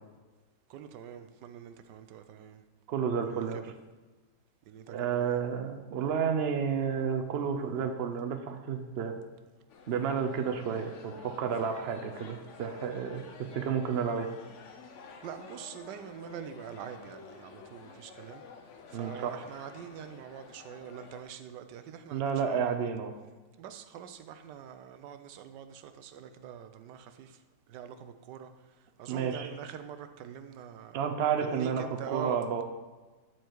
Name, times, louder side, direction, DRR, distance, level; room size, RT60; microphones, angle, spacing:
voice 1, 0.7-2.6 3.2-3.7 4.7-5.4 15.2-18.4 18.9-22.8 23.6-27.4 27.7-28.5 29.0-31.0 31.4-32.6, right 8 dB, 85° right, 10 dB, 1.3 m, -44 dB
voice 2, 2.9-3.7 4.9-9.2 9.9-14.3 18.9-19.4 22.1-23.1 29.1-29.5 30.9-32.6, right 7 dB, 70° right, 5 dB, 0.6 m, -31 dB
sound 1, 9.7-21.2, left 5 dB, 55° left, 0.9 m, -51 dB
12.5 x 4.6 x 4.5 m, 1.2 s
omnidirectional pair, 1.8 m